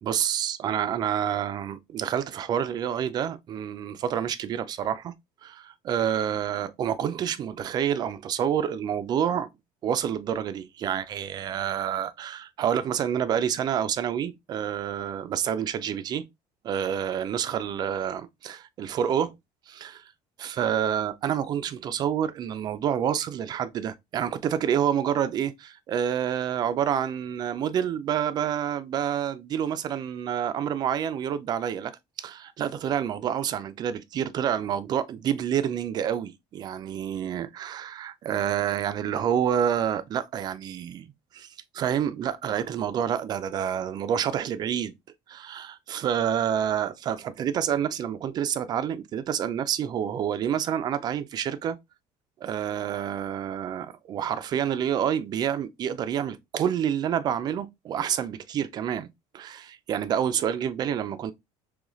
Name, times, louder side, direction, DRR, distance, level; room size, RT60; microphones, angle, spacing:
voice 1, 0.0-5.1 5.4-9.5 9.8-16.2 16.6-19.3 19.7-20.0 20.4-31.9 32.2-41.1 41.3-41.5 41.7-44.9 45.3-51.8 52.4-61.3, right 9 dB, 35° right, 0.4 m, -28 dB
3.9 x 3.1 x 3.0 m
cardioid pair, 165°, 12 cm